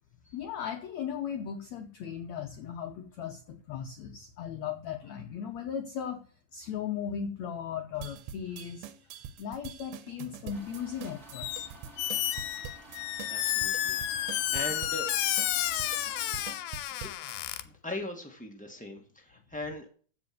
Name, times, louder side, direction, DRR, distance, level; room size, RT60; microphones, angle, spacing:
voice 1, 0.3-6.2 6.5-8.9 9.4-11.6, left 8 dB, 70° left, 7 dB, 1.8 m, -37 dB
sound 1, 8.0-17.4, right 8 dB, 80° right, 2.7 m, -44 dB
sound 2, 10.5-16.6, right 2 dB, 20° right, 2.2 m, -52 dB
Squeak, 11.3-11.7 12.0-17.6, left 13 dB, 85° left, 2.6 m, -31 dB
voice 2, 13.0-15.3 15.6-15.9 17.0-17.1 17.6-19.9, left 1 dB, 5° left, 2 dB, 0.8 m, -41 dB
15.0 x 5.2 x 7.8 m, 0.42 s
omnidirectional pair, 4.3 m